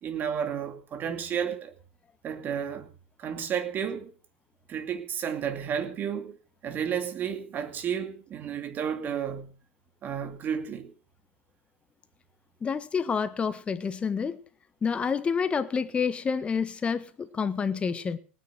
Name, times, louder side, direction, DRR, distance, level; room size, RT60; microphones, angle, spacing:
voice 1, 0.0-1.7 2.2-2.9 3.2-4.1 4.7-6.4 6.6-9.5 10.0-10.9, right 8 dB, 30° right, 2.6 m, -32 dB
voice 2, 12.6-14.4 14.8-18.2, left 6 dB, 15° left, 1.4 m, -28 dB
18.5 x 9.5 x 6.0 m
hypercardioid pair, 115°, 7 cm